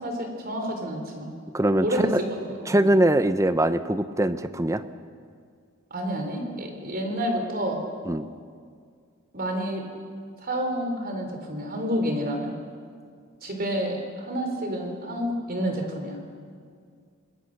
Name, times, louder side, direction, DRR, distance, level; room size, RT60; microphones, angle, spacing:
voice 1, 0.0-1.3 1.8-2.2 2.6-2.9 5.9-7.8 9.3-9.8 10.4-12.5 13.4-16.2, equal, 45° right, 4 dB, 3.7 m, -29 dB
voice 2, 1.5-2.2 2.7-4.8 8.1-8.3, right 1 dB, 15° right, 12 dB, 0.7 m, -22 dB
25.5 x 21.0 x 6.6 m, 2.1 s
head